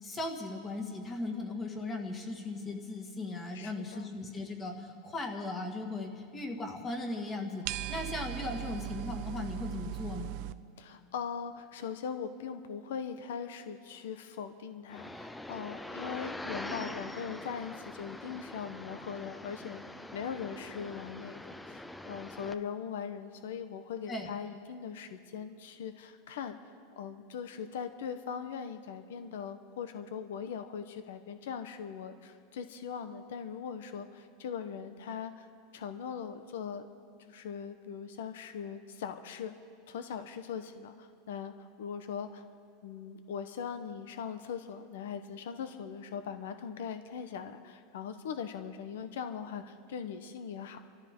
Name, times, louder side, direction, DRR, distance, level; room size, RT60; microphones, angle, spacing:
voice 1, 0.0-10.3 24.1-24.3, left 2 dB, 20° left, 3 dB, 2.0 m, -38 dB
voice 2, 3.5-4.1 10.8-19.8 20.1-26.6 27.0-35.5 35.7-36.9 37.2-39.5 39.9-42.4 42.8-50.8, left 7 dB, 85° left, 9 dB, 1.0 m, -40 dB
sound 1, 7.6-10.5, right 14 dB, 55° right, 0.6 m, -38 dB
Road noise ambient, 14.9-22.5, left 1 dB, 5° left, 0.5 m, -43 dB
27.5 x 13.5 x 3.7 m, 2.4 s
supercardioid pair, 145°, 0 cm